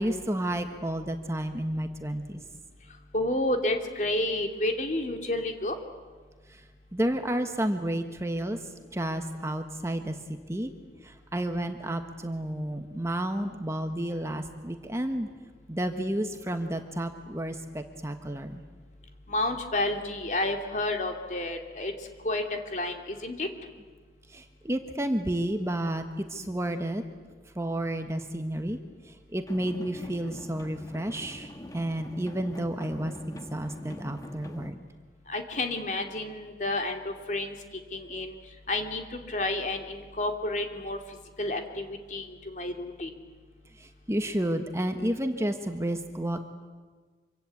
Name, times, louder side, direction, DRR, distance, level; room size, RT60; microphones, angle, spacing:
voice 1, 0.0-2.4 6.5-6.6 6.9-8.6 8.9-10.7 11.0-15.3 15.7-18.6 24.3-27.0 27.5-28.8 29.3-34.8 43.8-46.4, right 1 dB, 15° right, 6 dB, 1.2 m, -31 dB
voice 2, 3.1-5.7 19.3-21.9 22.2-23.5 35.3-37.5 37.9-38.3 38.7-39.0 39.3-41.0 41.4-43.1, left 1 dB, 45° left, 4 dB, 2.6 m, -30 dB
sound 1, 29.5-34.7, left 1 dB, 20° left, 1.4 m, -44 dB
26.0 x 25.0 x 8.5 m, 1.4 s
head